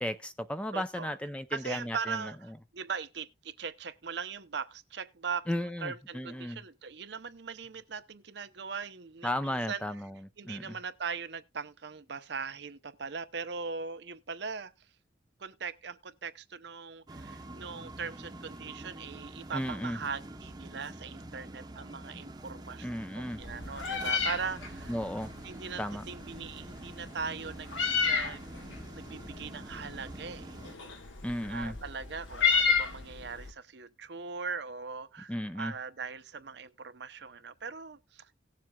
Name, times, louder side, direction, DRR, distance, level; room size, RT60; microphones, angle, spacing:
voice 1, 0.0-2.3 5.5-6.6 9.2-10.8 19.5-20.0 22.8-23.4 24.9-25.3 25.8-26.0 31.2-31.8 35.3-35.7, left 1 dB, 5° left, 0.5 m, -35 dB
voice 2, 0.7-1.2 1.5-5.5 5.8-9.8 10.4-14.7 15.4-24.9 25.4-27.7 28.0-28.4 28.9-30.6 31.5-38.3, right 5 dB, 60° right, 0.7 m, -40 dB
sound 1, 17.1-30.7, right 1 dB, 20° right, 0.8 m, -46 dB
Meow, 23.4-33.5, left 6 dB, 80° left, 1.5 m, -33 dB
18.5 x 7.5 x 2.3 m
head